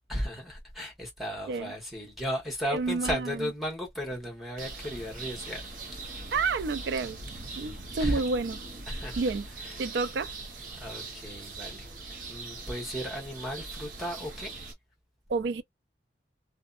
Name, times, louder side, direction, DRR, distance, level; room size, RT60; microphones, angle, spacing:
voice 1, 0.1-6.1 8.0-8.2 8.9-9.2 9.6-9.7 10.7-11.9 12.3-14.5, equal, ahead, 1.1 m, -35 dB
voice 2, 2.7-3.5 6.3-7.2 7.6-8.6 9.2-9.5 9.8-10.3 15.3-15.6, right 4 dB, 70° right, 0.3 m, -29 dB
sound 1, 4.6-14.7, right 3 dB, 45° right, 0.7 m, -41 dB
2.7 x 2.1 x 2.4 m
head